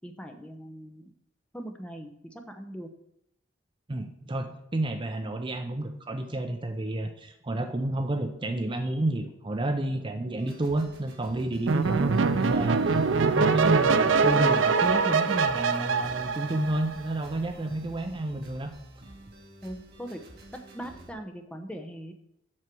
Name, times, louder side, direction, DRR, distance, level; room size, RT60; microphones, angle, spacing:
voice 1, 0.0-1.1 1.5-2.9 11.9-12.2 19.6-20.2 20.7-22.1, equal, 5° left, 4 dB, 0.8 m, -40 dB
voice 2, 3.9-12.8 13.2-18.7, right 2 dB, 25° right, 6 dB, 0.5 m, -30 dB
sound 1, 10.4-21.1, right 1 dB, 55° right, 2.0 m, -50 dB
sound 2, 11.7-17.1, right 4 dB, 70° right, 0.5 m, -24 dB
7.5 x 6.5 x 6.1 m, 0.78 s
head